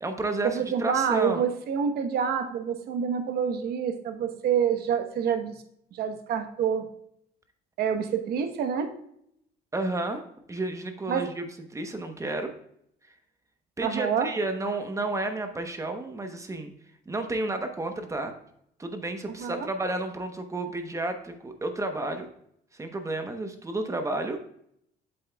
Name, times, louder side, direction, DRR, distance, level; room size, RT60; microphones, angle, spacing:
voice 1, 0.0-1.4 9.7-10.2 10.5-11.4 11.7-12.5 13.8-16.7 17.1-18.4 18.8-22.3 22.7-24.4, right 2 dB, 20° right, 6 dB, 0.9 m, -31 dB
voice 2, 0.5-5.5 5.9-6.8 7.8-8.9 11.1-11.3 13.8-14.3 19.4-19.7, right 7 dB, 70° right, 7 dB, 1.0 m, -27 dB
7.7 x 7.6 x 2.3 m, 0.72 s
cardioid pair, 110°, 17 cm